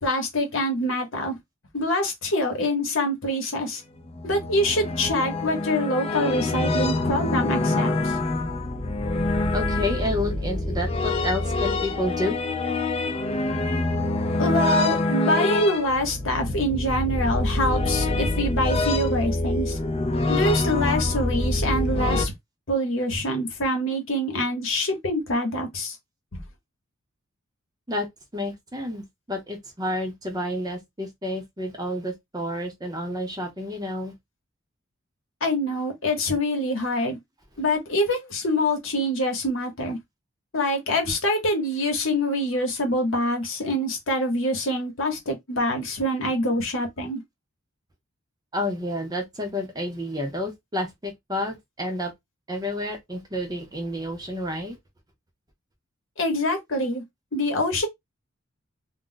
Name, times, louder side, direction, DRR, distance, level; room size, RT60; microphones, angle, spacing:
voice 1, 0.0-1.4 1.7-3.8 4.2-8.2 14.4-19.8 20.3-22.3 22.7-26.0 26.3-26.4 35.4-37.2 37.6-40.0 40.5-47.2 56.2-57.0 57.3-57.9, left 1 dB, 65° left, 1.0 m, -25 dB
sound 1, 4.0-22.3, left 2 dB, 25° left, 0.4 m, -25 dB
voice 2, 9.5-12.3 27.9-28.1 28.3-34.1 48.5-52.1 52.5-54.8, left 1 dB, 20° right, 0.6 m, -30 dB
2.3 x 2.1 x 3.8 m
head